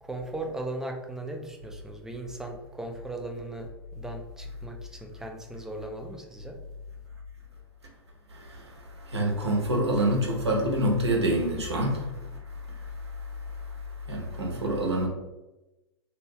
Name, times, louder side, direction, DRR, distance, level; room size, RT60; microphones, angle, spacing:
voice 1, 0.0-6.6 14.5-14.7, right 2 dB, 5° right, 2 dB, 0.4 m, -38 dB
voice 2, 8.3-15.1, right 1 dB, 80° right, -1 dB, 0.9 m, -28 dB
3.0 x 2.6 x 3.2 m, 1.0 s
figure-of-eight pair, 95°, 14 cm